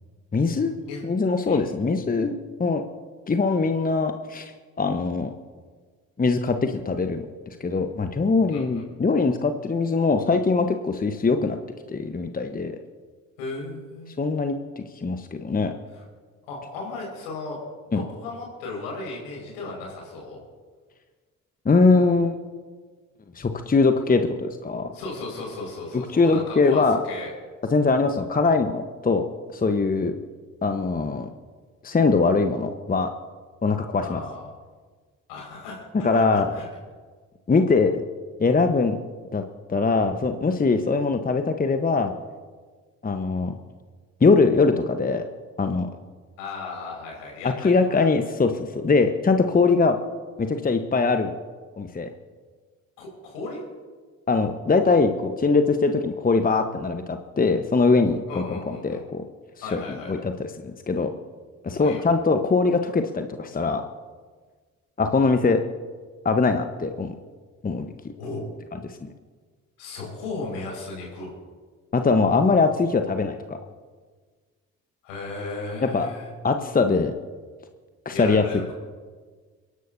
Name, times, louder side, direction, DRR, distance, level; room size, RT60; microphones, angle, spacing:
voice 1, 0.3-0.7 1.0-2.8 3.3-4.5 4.8-5.3 6.2-7.3 7.6-11.6 11.9-12.8 14.2-14.6 15.0-15.7 17.9-18.0 21.6-22.4 23.4-24.9 25.9-27.0 27.7-29.2 29.5-30.1 30.6-31.3 31.8-33.1 33.6-34.2 36.0-36.5 37.5-38.0 38.4-39.0 39.3-39.4 39.7-42.1 43.0-43.5 44.2-45.2 45.6-45.9 47.4-50.0 50.4-51.3 51.8-52.1 54.3-58.6 58.8-59.2 59.6-61.1 61.6-63.8 65.0-65.6 66.2-67.1 67.6-67.9 71.9-73.6 75.9-76.1 76.4-77.1 78.0-78.4, left 4 dB, 20° left, 7 dB, 1.2 m, -22 dB
voice 2, 8.5-8.8 13.4-14.1 15.9-16.0 16.5-17.6 17.9-20.4 24.9-27.3 34.0-34.5 35.3-36.7 46.4-47.7 53.0-53.6 58.3-59.0 59.6-60.2 61.8-62.1 68.2-68.4 69.8-71.3 75.0-76.3 78.1-78.7, left 3 dB, 70° left, -1 dB, 5.5 m, -35 dB
30.0 x 11.5 x 2.8 m, 1.5 s
figure-of-eight pair, 40°, 40 cm